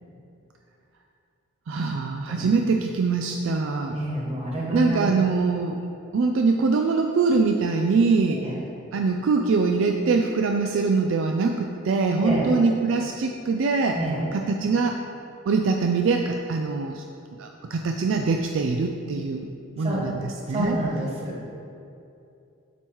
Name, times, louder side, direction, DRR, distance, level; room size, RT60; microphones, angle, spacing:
voice 1, 1.7-3.9 4.7-5.8 6.1-8.4 8.9-14.0 14.3-15.0 15.5-17.0 17.4-19.5 19.8-20.8, right 4 dB, 60° right, 3 dB, 0.3 m, -23 dB
voice 2, 3.9-5.1 8.3-8.6 12.1-12.5 13.9-14.2 19.8-20.1 20.5-21.4, right 1 dB, 30° right, -5 dB, 1.5 m, -28 dB
7.9 x 3.0 x 6.2 m, 2.6 s
head